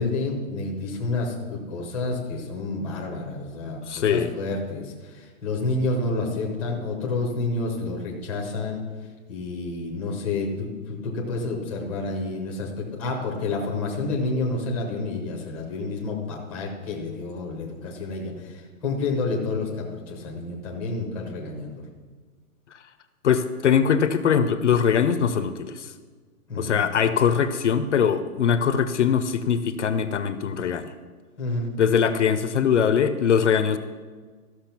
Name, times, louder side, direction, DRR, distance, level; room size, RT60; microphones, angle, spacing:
voice 1, 0.0-8.8 9.3-21.8 26.5-26.8 31.4-31.7, left 3 dB, 5° left, -2 dB, 0.8 m, -29 dB
voice 2, 3.9-4.3 23.2-25.9 26.6-30.9 31.8-33.8, left 7 dB, 55° left, 10 dB, 0.7 m, -22 dB
13.5 x 6.4 x 5.9 m, 1.4 s
hypercardioid pair, 175°, 44 cm